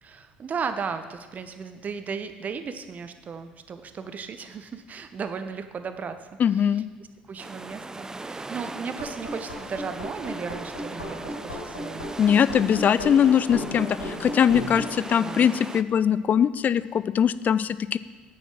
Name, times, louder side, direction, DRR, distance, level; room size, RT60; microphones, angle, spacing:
voice 1, 0.0-6.8 7.3-12.1 15.2-15.6, right 5 dB, 35° right, 9 dB, 1.0 m, -35 dB
voice 2, 6.4-6.9 12.2-18.0, left 8 dB, 35° left, 16 dB, 0.4 m, -21 dB
sound 1, 7.4-15.8, right 2 dB, 15° right, 0.5 m, -39 dB
sound 2, 9.0-14.9, left 1 dB, 85° left, 4.0 m, -35 dB
9.8 x 8.3 x 6.0 m, 1.4 s
figure-of-eight pair, 60°, 5 cm